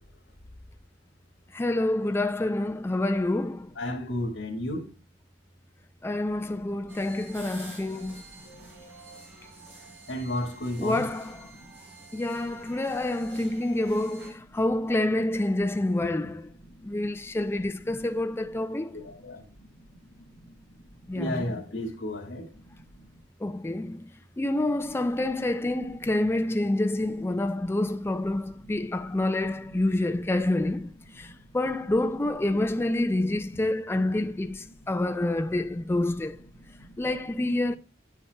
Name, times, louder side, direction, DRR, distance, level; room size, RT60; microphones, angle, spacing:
voice 1, 1.5-3.7 6.0-8.2 10.8-11.5 12.1-16.5 16.8-19.0 21.1-21.5 23.4-24.1 24.4-36.4 37.0-37.8, left 1 dB, 15° left, 0.3 m, -28 dB
voice 2, 3.8-4.9 10.1-11.0 18.9-19.4 21.1-22.5, left 1 dB, 80° left, 1.9 m, -32 dB
sound 1, 6.9-14.3, right 2 dB, 75° right, 4.5 m, -48 dB
9.8 x 7.2 x 2.2 m
head